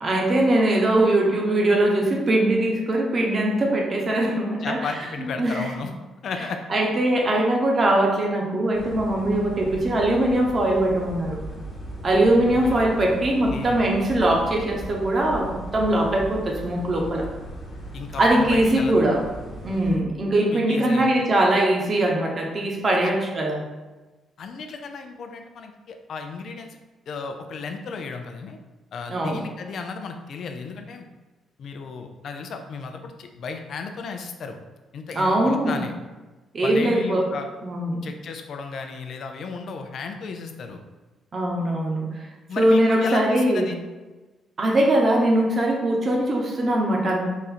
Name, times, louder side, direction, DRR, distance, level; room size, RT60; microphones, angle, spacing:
voice 1, 0.0-4.8 5.4-5.7 6.7-11.4 12.0-17.3 18.2-19.2 19.6-23.6 29.1-29.4 35.1-35.8 36.5-37.3 37.6-38.0 41.3-42.1 42.6-43.7 44.6-47.3, right 1 dB, 40° right, 0 dB, 0.9 m, -21 dB
voice 2, 4.6-5.9 6.2-6.6 12.4-12.8 13.5-13.8 17.9-19.1 20.5-21.1 22.9-23.1 24.4-26.8 27.1-28.6 28.9-31.0 31.6-34.6 34.9-35.9 36.6-37.5 38.0-40.8 42.5-43.8, left 5 dB, 65° left, 5 dB, 0.5 m, -34 dB
sound 1, 8.7-20.0, right 1 dB, 35° left, 1.4 m, -38 dB
4.1 x 2.5 x 4.2 m, 1.2 s
cardioid pair, 90°, 0 cm